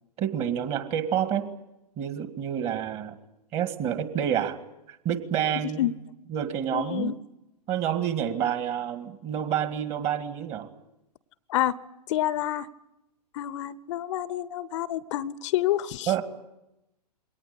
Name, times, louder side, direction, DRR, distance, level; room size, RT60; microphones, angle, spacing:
voice 1, 0.2-1.5 2.0-3.2 3.5-4.6 4.9-5.9 6.3-7.1 7.7-10.7 16.1-16.2, right 9 dB, 30° right, 10 dB, 1.9 m, -28 dB
voice 2, 6.7-7.2 11.5-11.7 12.1-12.7 13.3-16.1, left 13 dB, 45° left, 19 dB, 0.8 m, -28 dB
22.0 x 18.5 x 9.8 m, 0.91 s
figure-of-eight pair, 110°, 21 cm